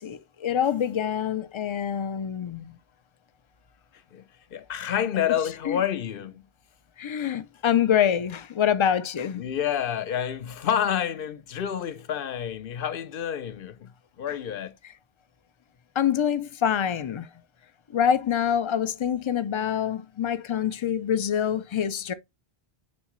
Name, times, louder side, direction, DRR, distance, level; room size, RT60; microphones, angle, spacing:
voice 1, 0.0-2.8 5.7-5.8 7.0-9.4 16.0-17.3 17.9-22.1, left 9 dB, 40° left, 0.4 m, -25 dB
voice 2, 4.5-6.5 9.3-13.9 14.2-14.7, left 9 dB, 65° left, 0.8 m, -29 dB
9.6 x 3.6 x 3.1 m
omnidirectional pair, 1.0 m